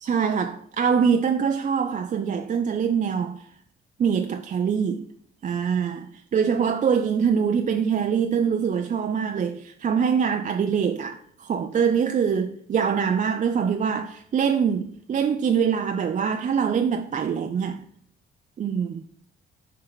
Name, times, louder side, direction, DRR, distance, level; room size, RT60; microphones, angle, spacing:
voice 1, 0.0-3.4 4.0-5.0 5.4-17.8 18.6-19.0, right 7 dB, 40° right, 0.4 m, -24 dB
6.5 x 4.3 x 3.9 m
cardioid pair, 90°, 20 cm